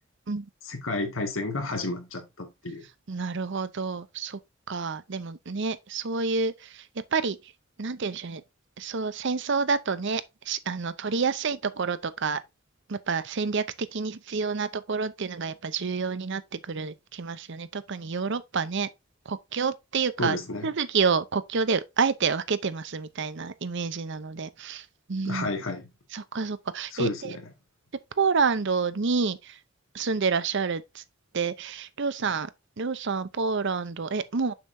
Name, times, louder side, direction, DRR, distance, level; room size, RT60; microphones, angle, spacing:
voice 1, 0.7-2.8 20.2-20.7 25.3-25.9 26.9-27.5, left 2 dB, 85° left, 1.9 m, -31 dB
voice 2, 3.1-4.4 4.7-6.8 7.1-7.4 7.8-8.4 8.8-12.4 12.9-18.9 19.3-20.4 20.6-25.5 26.1-27.4 28.2-29.5 29.9-31.0 31.3-32.5 32.8-34.5, right 5 dB, 65° right, 0.7 m, -28 dB
6.7 x 6.6 x 2.7 m
head